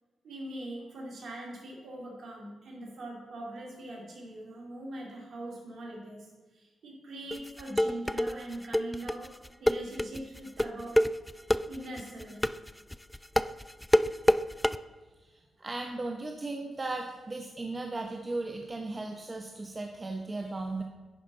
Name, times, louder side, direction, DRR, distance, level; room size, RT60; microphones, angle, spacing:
voice 1, 0.2-9.3 9.6-11.0 11.7-12.4, right 1 dB, 65° right, -1 dB, 2.4 m, -42 dB
sound 1, 7.3-14.8, left 1 dB, 10° left, 0.3 m, -26 dB
voice 2, 15.6-20.8, right 2 dB, 35° right, 3 dB, 0.8 m, -36 dB
11.0 x 5.1 x 3.9 m, 1.2 s
supercardioid pair, 45°, 0 cm